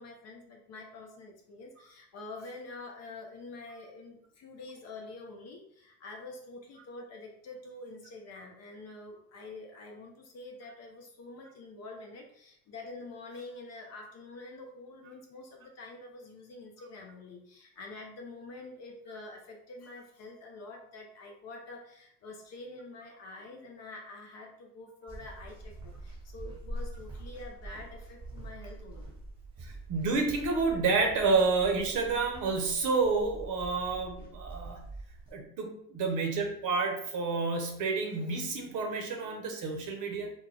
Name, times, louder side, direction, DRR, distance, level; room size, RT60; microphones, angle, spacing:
voice 1, 0.0-29.1, left 2 dB, 35° left, 2 dB, 0.5 m, -46 dB
sound 1, 25.1-35.3, right 2 dB, 10° right, 1.1 m, -45 dB
voice 2, 29.6-34.9 35.3-40.3, right 4 dB, 40° right, 2 dB, 0.7 m, -29 dB
2.3 x 2.2 x 3.2 m, 0.71 s
hypercardioid pair, 70°, 46 cm